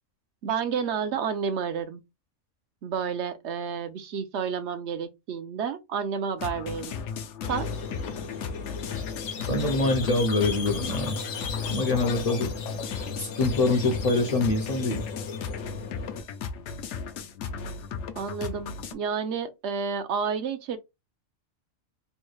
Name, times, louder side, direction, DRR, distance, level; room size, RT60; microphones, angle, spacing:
voice 1, 0.4-2.0 2.8-7.0 7.5-7.7 18.2-20.8, right 6 dB, 70° right, 0.8 m, -30 dB
sound 1, 6.4-18.9, left 6 dB, 70° left, 0.8 m, -35 dB
Squeak, 7.4-16.2, left 5 dB, 85° left, 1.1 m, -36 dB
voice 2, 9.5-11.2 11.7-12.5 13.2-15.0, left 2 dB, 45° left, 0.5 m, -25 dB
3.4 x 2.2 x 3.1 m
omnidirectional pair, 1.3 m